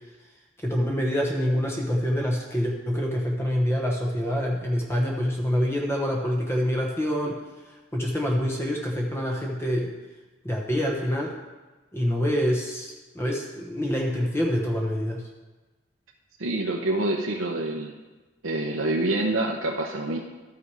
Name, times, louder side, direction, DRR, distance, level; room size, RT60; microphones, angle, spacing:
voice 1, 0.6-7.4 7.7-9.9 10.4-11.3 11.9-15.2, equal, 10° left, 0 dB, 0.9 m, -26 dB
voice 2, 16.4-17.9 18.4-20.2, right 2 dB, 90° right, 0 dB, 0.9 m, -26 dB
13.0 x 5.8 x 4.8 m, 1.2 s
head